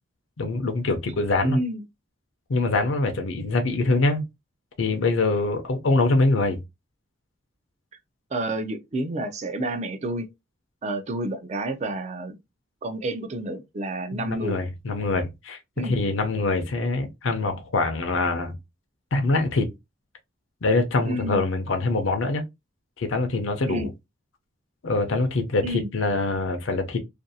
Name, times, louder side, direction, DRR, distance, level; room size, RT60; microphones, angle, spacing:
voice 1, 0.4-1.6 2.5-4.2 4.8-6.6 14.1-18.6 19.1-19.7 20.6-22.4 23.0-23.9 24.8-27.0, left 3 dB, 70° left, 0.6 m, -24 dB
voice 2, 1.4-1.8 8.3-10.3 10.8-12.4 12.8-14.6 15.8-15.9 21.1-21.4 23.7-23.9 25.6-25.9, right 2 dB, 35° right, 0.4 m, -29 dB
2.5 x 2.3 x 2.6 m
head